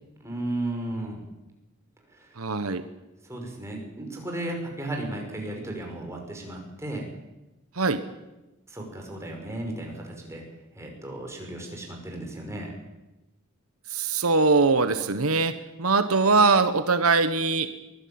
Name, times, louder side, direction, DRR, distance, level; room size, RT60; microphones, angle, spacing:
voice 1, 0.2-1.2 2.1-2.3 3.3-7.0 8.7-10.4 10.8-12.7, right 1 dB, 15° right, 1 dB, 5.7 m, -34 dB
voice 2, 2.4-2.8 7.7-8.0 13.9-17.7, right 4 dB, 85° right, 10 dB, 1.3 m, -22 dB
22.5 x 15.5 x 8.8 m, 1.0 s
head